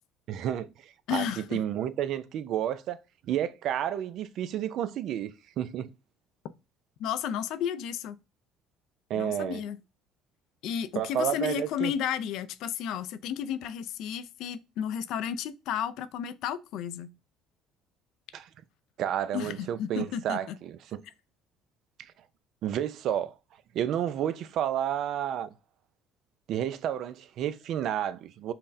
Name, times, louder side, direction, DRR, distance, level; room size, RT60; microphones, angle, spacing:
voice 1, 0.3-5.9 9.1-9.6 11.0-11.9 18.3-18.5 19.0-21.0 22.6-23.3 23.7-25.5 26.5-28.5, right 10 dB, 65° right, 0.3 m, -31 dB
voice 2, 1.1-1.6 7.0-8.2 9.1-9.8 10.6-17.2 19.3-20.6, left 9 dB, 70° left, 0.3 m, -33 dB
5.6 x 2.1 x 2.6 m
supercardioid pair, 80°, 0 cm